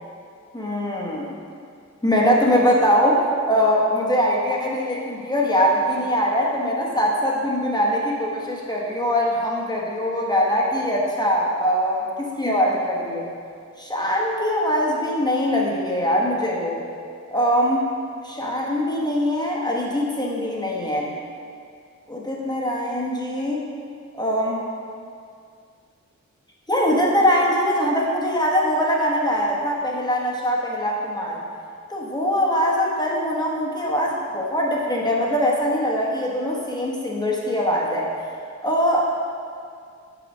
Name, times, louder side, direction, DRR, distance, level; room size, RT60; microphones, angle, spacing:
voice 1, 0.5-1.3 2.0-13.3 13.8-16.9 17.3-17.9 18.2-21.1 22.1-23.6 24.1-24.6 26.7-31.4 31.9-38.1 38.6-39.1, equal, 15° left, -4 dB, 1.1 m, -22 dB
7.6 x 5.8 x 5.4 m, 2.3 s
wide cardioid pair, 125°, 29 cm